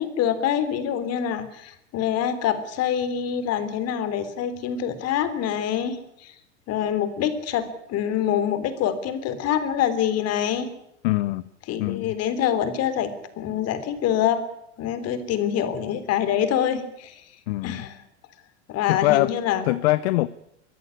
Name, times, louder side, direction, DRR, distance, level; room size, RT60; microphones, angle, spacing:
voice 1, 0.0-6.3 6.7-10.7 11.7-13.1 13.4-14.4 14.8-17.2 17.6-18.0 18.7-19.6, left 9 dB, 45° left, 12 dB, 3.5 m, -25 dB
voice 2, 11.0-11.4 11.8-12.1 17.5-17.8 18.9-19.3 19.7-20.3, left 19 dB, 65° left, 17 dB, 0.8 m, -22 dB
24.0 x 13.5 x 9.9 m, 0.80 s
hypercardioid pair, 100°, 35 cm